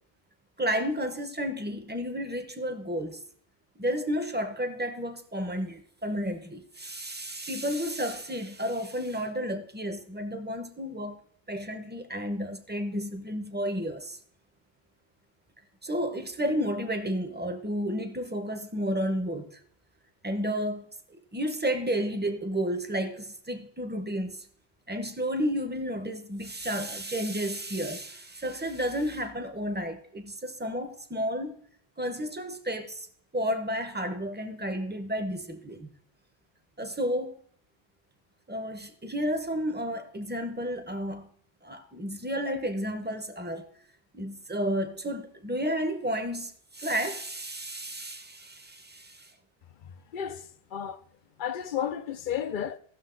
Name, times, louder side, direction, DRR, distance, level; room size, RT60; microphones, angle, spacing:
voice 1, 0.6-3.2 3.8-11.2 11.5-14.2 15.8-19.6 20.2-24.5 24.9-31.6 32.0-33.1 33.3-35.9 36.8-37.4 38.5-41.3 41.6-43.7 44.1-49.3, equal, 10° right, 0.7 m, -32 dB
voice 2, 50.1-50.5 50.7-51.0 51.4-52.8, left 9 dB, 60° left, 0.7 m, -32 dB
15.0 x 6.3 x 3.8 m
omnidirectional pair, 1.1 m